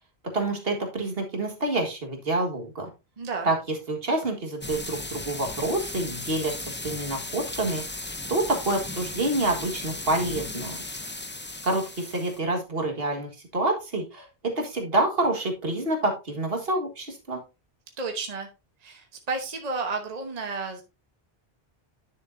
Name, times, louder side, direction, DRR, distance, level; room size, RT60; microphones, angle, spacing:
voice 1, 0.3-2.9 3.4-7.8 8.3-10.8 11.6-14.3 14.6-17.4, right 2 dB, 65° right, 2 dB, 1.9 m, -27 dB
voice 2, 3.2-3.5 18.0-18.5 18.8-20.8, right 4 dB, 40° right, 4 dB, 1.1 m, -32 dB
sound 1, 4.6-12.4, left 2 dB, 15° left, 0.4 m, -36 dB
10.0 x 6.6 x 2.6 m, 0.27 s
omnidirectional pair, 1.1 m